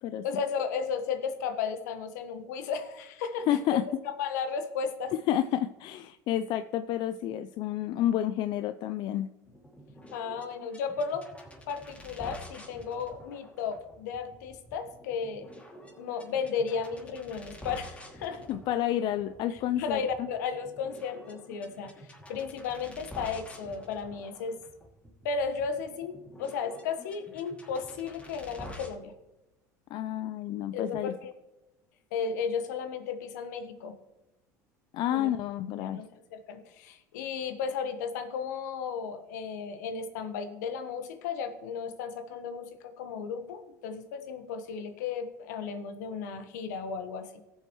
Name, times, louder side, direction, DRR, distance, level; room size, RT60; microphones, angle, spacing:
voice 1, 0.2-3.8 4.2-5.1 10.1-11.3 11.7-15.5 16.0-18.4 19.5-24.6 25.2-29.1 30.7-31.3 32.1-34.0 35.1-35.3 35.8-47.3, left 6 dB, 75° left, 8 dB, 1.3 m, -34 dB
voice 2, 3.5-3.8 5.3-9.3 18.5-20.0 29.9-31.1 34.9-36.0, left 11 dB, 55° left, 12 dB, 0.5 m, -29 dB
sound 1, 9.4-28.9, left 1 dB, 15° left, 2.5 m, -49 dB
18.5 x 7.9 x 3.1 m, 1.0 s
hypercardioid pair, 75°, 9 cm